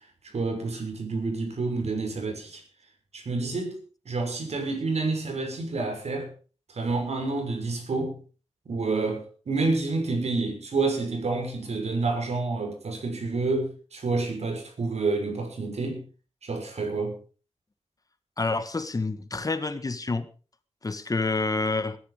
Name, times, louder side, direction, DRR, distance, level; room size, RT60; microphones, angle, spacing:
voice 1, 0.3-2.6 3.1-3.8 4.0-6.3 6.7-8.2 8.7-16.0 16.4-17.2, right 3 dB, 70° right, 6.1 m, -28 dB
voice 2, 18.4-20.3 20.8-22.0, left 3 dB, 30° left, 1.4 m, -28 dB
20.0 x 11.0 x 5.1 m
wide cardioid pair, 130°, 11 cm